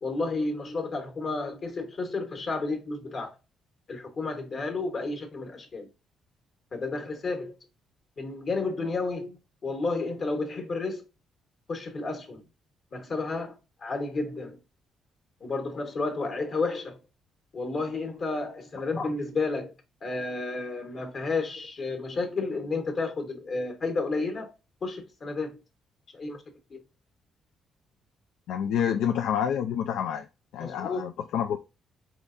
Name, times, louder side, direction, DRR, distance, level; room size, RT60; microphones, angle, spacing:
voice 1, 0.0-3.3 3.9-5.9 6.7-7.5 8.2-9.4 9.6-11.0 11.7-12.4 12.9-14.6 15.4-17.0 17.5-19.7 20.0-24.5 24.8-25.6 26.1-26.4 26.7-26.8 30.6-31.0, left 3 dB, 50° left, 1.3 m, -31 dB
voice 2, 28.5-30.3 30.5-31.6, left 9 dB, 85° left, 0.4 m, -28 dB
4.2 x 3.7 x 2.6 m
cardioid pair, 90°, 0 cm